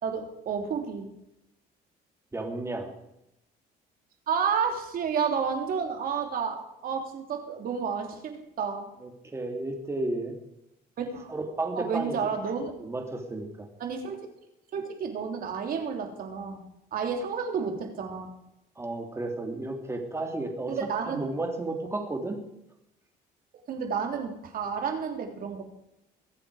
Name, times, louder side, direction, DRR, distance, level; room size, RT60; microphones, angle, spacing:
voice 1, 0.0-1.1 4.3-8.9 11.0-11.3 11.8-12.7 13.8-14.2 14.7-16.6 16.9-18.3 20.7-21.2 23.7-25.6, right 6 dB, 60° right, 4 dB, 3.1 m, -31 dB
voice 2, 2.3-2.9 9.0-10.3 11.3-12.3 12.8-13.7 18.8-20.8 21.0-22.4, right 2 dB, 15° right, 3 dB, 2.9 m, -33 dB
22.5 x 8.6 x 4.9 m, 0.85 s
cardioid pair, 110°, 17 cm